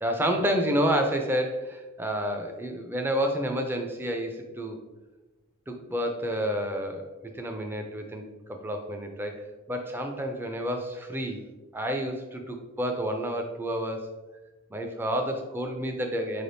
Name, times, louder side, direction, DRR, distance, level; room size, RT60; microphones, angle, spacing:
voice 1, 0.0-4.8 5.7-11.4 11.7-14.1 14.7-16.4, equal, 10° right, 4 dB, 0.4 m, -29 dB
4.4 x 3.4 x 2.6 m, 1.2 s
head